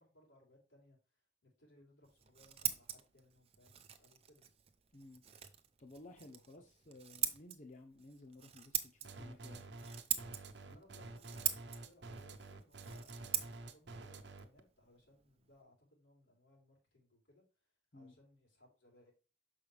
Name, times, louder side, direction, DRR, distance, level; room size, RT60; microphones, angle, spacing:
voice 1, 0.0-4.4 6.6-6.7 10.6-19.1, left 1 dB, 85° left, 3.8 m, -67 dB
Scissors, 2.0-15.6, right 10 dB, 35° right, 0.7 m, -44 dB
voice 2, 4.9-5.2 5.8-9.7 17.9-18.2, left 2 dB, 40° left, 0.7 m, -56 dB
sound 1, 9.0-14.6, right 2 dB, 70° right, 0.8 m, -49 dB
6.8 x 5.5 x 3.4 m
head